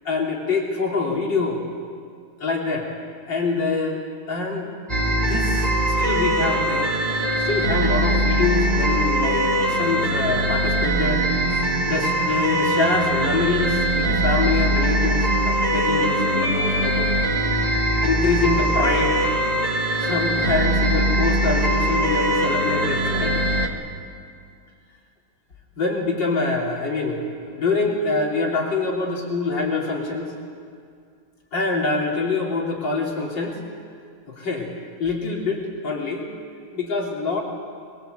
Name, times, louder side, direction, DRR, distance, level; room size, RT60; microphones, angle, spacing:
voice 1, 0.0-1.6 2.4-2.9 3.3-4.0 4.3-4.7 5.2-5.7 6.0-6.9 7.4-17.2 18.0-19.2 20.0-23.4 25.8-27.2 27.5-30.3 31.5-33.6 34.3-34.7 35.0-36.3 36.7-37.4, left 3 dB, 60° left, -1 dB, 3.9 m, -25 dB
sound 1, 4.9-23.7, right 1 dB, 20° right, 1.8 m, -21 dB
24.5 x 21.0 x 8.0 m, 2.2 s
omnidirectional pair, 2.2 m